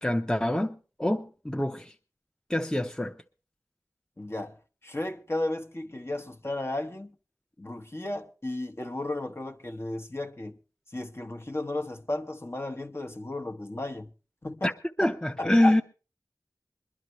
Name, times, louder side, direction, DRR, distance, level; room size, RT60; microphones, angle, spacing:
voice 1, 0.0-1.9 2.5-3.1 14.6-14.7 15.0-15.8, left 1 dB, 10° left, 0.8 m, -25 dB
voice 2, 4.2-4.6 4.8-7.1 7.6-10.6 10.9-14.1 14.4-14.7 15.4-15.8, left 2 dB, 35° left, 1.1 m, -34 dB
22.5 x 11.5 x 3.1 m
wide cardioid pair, 50°, 7 cm